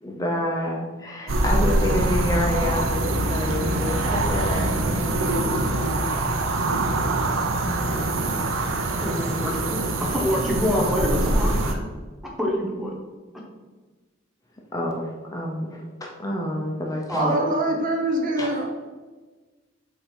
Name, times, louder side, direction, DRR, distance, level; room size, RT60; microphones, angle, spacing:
voice 1, 0.0-5.0 7.6-8.1 14.7-15.8 16.2-17.3 18.4-18.6, left 1 dB, 15° left, -1 dB, 0.6 m, -28 dB
sound 1, 1.3-11.7, right 2 dB, 80° right, 0.7 m, -24 dB
voice 2, 9.0-11.8 12.4-12.9 17.1-17.5, equal, ahead, -3 dB, 1.2 m, -26 dB
voice 3, 17.1-18.7, right 1 dB, 40° right, 2 dB, 0.8 m, -24 dB
7.1 x 2.8 x 5.2 m, 1.3 s
head